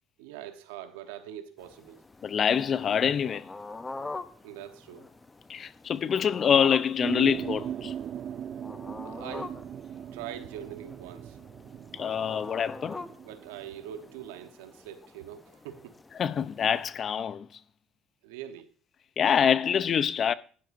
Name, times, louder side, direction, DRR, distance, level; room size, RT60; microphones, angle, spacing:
voice 1, 0.2-2.0 4.4-5.1 9.0-9.6 9.9-11.4 13.2-16.0 18.2-18.7, right 11 dB, 85° right, 1.0 m, -43 dB
sound 1, 1.6-17.0, left 3 dB, 20° left, 0.8 m, -45 dB
voice 2, 2.2-3.4 5.5-7.9 12.0-13.0 16.2-17.5 19.2-20.3, left 8 dB, 45° left, 0.5 m, -25 dB
sound 2, 7.0-14.5, right 9 dB, 55° right, 0.4 m, -39 dB
12.0 x 10.5 x 2.6 m
supercardioid pair, 75°, 0 cm